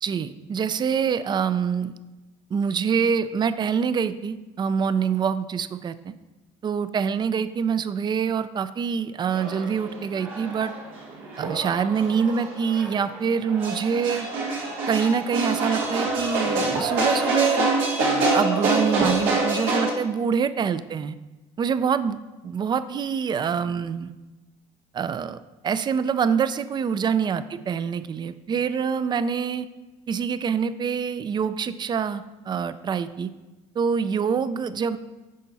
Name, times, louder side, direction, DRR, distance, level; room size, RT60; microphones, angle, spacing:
voice 1, 0.0-1.9 2.5-6.1 6.6-10.7 11.4-14.3 14.9-17.7 18.0-21.2 21.6-22.2 22.4-24.1 24.9-25.4 25.6-29.7 30.1-33.3 33.8-35.0, right 6 dB, 35° right, 13 dB, 0.4 m, -25 dB
sound 1, 9.3-19.9, right 3 dB, 90° right, 1.9 m, -26 dB
8.4 x 5.5 x 4.1 m, 1.1 s
cardioid pair, 105°, 13 cm